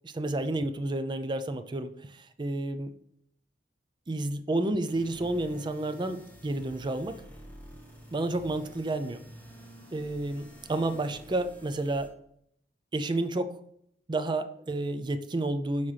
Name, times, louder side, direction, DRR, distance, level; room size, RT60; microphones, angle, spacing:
voice 1, 0.0-2.9 4.1-7.1 8.1-9.2 9.9-12.1 12.9-13.5 14.1-15.9, right 2 dB, 25° right, 9 dB, 0.4 m, -30 dB
sound 1, 4.9-12.1, equal, 10° left, 1.3 m, -50 dB
6.0 x 5.5 x 3.3 m, 0.70 s
head